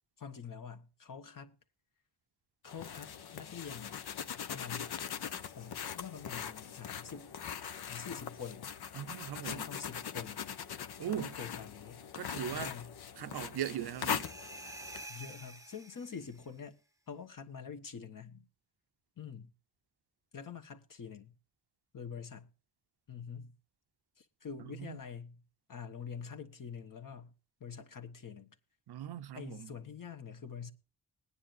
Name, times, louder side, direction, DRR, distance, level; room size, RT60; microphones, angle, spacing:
voice 1, 0.2-1.6 2.6-4.0 4.5-5.0 5.6-7.3 7.9-8.7 9.4-10.4 11.1-12.1 12.5-12.9 15.1-16.8 17.1-18.5 19.2-19.5 20.3-21.3 21.9-22.5 23.1-23.5 24.2-25.4 25.7-27.3 27.6-28.5 29.3-30.7, left 6 dB, 60° left, 1.3 m, -46 dB
sound 1, 2.6-15.1, left 8 dB, 85° left, 0.8 m, -41 dB
voice 2, 8.9-9.7 11.0-11.4 12.1-12.8 13.2-14.3 24.6-25.0 28.9-29.7, right 10 dB, 85° right, 0.6 m, -39 dB
sound 2, 13.8-16.5, right 2 dB, 10° right, 0.8 m, -49 dB
21.0 x 9.8 x 2.5 m
wide cardioid pair, 90°, 38 cm